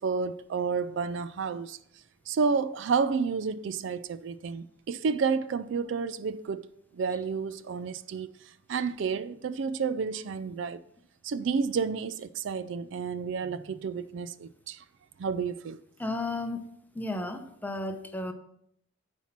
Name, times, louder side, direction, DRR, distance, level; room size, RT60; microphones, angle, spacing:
voice 1, 0.0-1.8 2.3-8.3 8.7-10.8 11.2-14.8 15.2-15.8, right 5 dB, 60° right, 0.3 m, -30 dB
voice 2, 16.0-16.7 16.9-18.3, left 2 dB, 10° left, 0.7 m, -33 dB
9.9 x 4.4 x 5.9 m
head